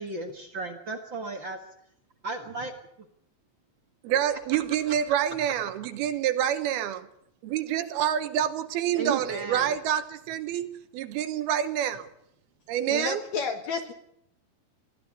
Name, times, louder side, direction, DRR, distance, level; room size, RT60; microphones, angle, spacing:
voice 1, 0.0-1.6 2.2-2.7 8.9-9.7, right 3 dB, 45° right, 1.6 m, -34 dB
voice 2, 4.0-7.1 7.4-12.1 12.7-13.2, right 10 dB, 80° right, 3.0 m, -27 dB
voice 3, 12.9-13.9, left 5 dB, 60° left, 2.2 m, -31 dB
20.0 x 15.0 x 9.9 m
omnidirectional pair, 4.5 m